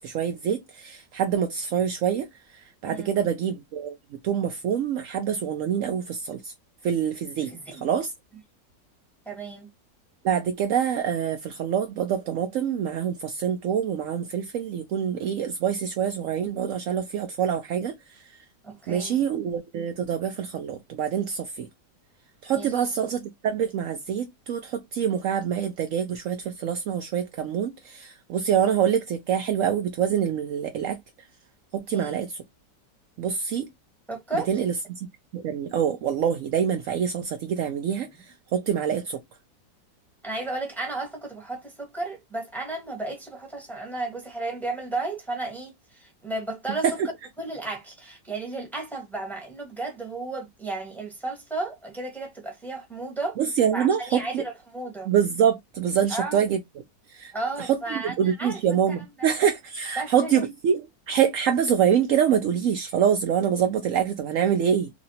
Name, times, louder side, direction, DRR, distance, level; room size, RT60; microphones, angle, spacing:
voice 1, 0.0-2.3 2.8-4.0 4.2-6.5 6.8-7.5 7.8-8.1 10.2-17.9 18.9-21.7 22.4-31.0 31.7-32.3 33.2-33.7 34.3-35.0 35.3-38.1 38.5-39.2 46.8-47.1 53.4-54.4 55.1-56.6 57.1-57.3 57.6-64.9, right 8 dB, 90° right, 0.7 m, -25 dB
voice 2, 2.9-3.2 7.4-7.9 9.2-9.7 18.6-19.2 22.6-22.8 31.9-32.2 34.1-34.5 40.2-46.8 47.4-53.4 53.7-55.1 56.1-56.4 57.3-58.6 58.9-59.3 60.0-60.5, right 2 dB, ahead, 1.0 m, -33 dB
3.0 x 2.6 x 2.7 m
omnidirectional pair, 1.9 m